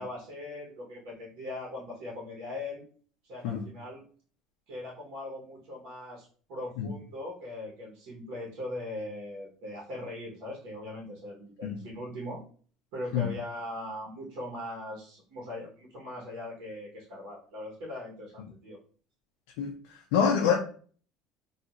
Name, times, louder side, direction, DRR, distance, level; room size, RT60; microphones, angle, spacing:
voice 1, 0.0-2.8 3.2-4.0 4.7-12.4 12.9-18.8, left 1 dB, 75° right, 1.0 m, -40 dB
voice 2, 20.1-20.5, left 7 dB, 85° left, 0.4 m, -25 dB
2.8 x 2.4 x 2.4 m
cardioid pair, 140°, 0 cm